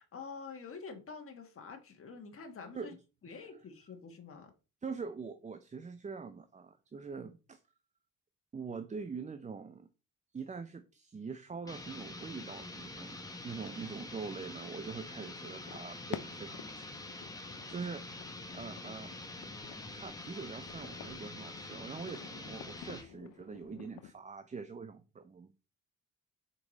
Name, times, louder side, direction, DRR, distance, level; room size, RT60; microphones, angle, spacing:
voice 1, 0.0-2.9 3.2-4.5, left 5 dB, 40° left, 1.3 m, -47 dB
voice 2, 4.8-7.6 8.5-9.9 10.3-16.9 17.3-18.0 18.5-19.1 19.9-25.5, right 5 dB, 20° right, 0.5 m, -44 dB
sound 1, 11.7-23.1, left 2 dB, 10° left, 1.1 m, -46 dB
sound 2, 15.2-24.1, left 12 dB, 90° left, 0.5 m, -50 dB
5.3 x 4.7 x 4.0 m
cardioid pair, 95°, 33 cm